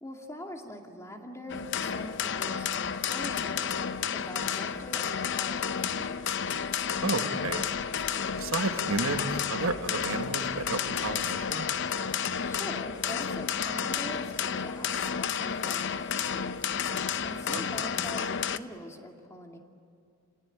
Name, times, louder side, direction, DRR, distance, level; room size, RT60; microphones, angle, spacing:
voice 1, 0.0-3.7 4.1-6.4 12.4-16.8 17.2-19.6, left 1 dB, 15° left, 2 dB, 2.3 m, -43 dB
sound 1, 1.5-18.6, left 7 dB, 55° left, 0.7 m, -31 dB
voice 2, 7.0-7.6 8.3-11.7 17.5-17.6, right 3 dB, 70° right, 8 dB, 1.3 m, -32 dB
29.0 x 18.0 x 9.9 m, 2.4 s
head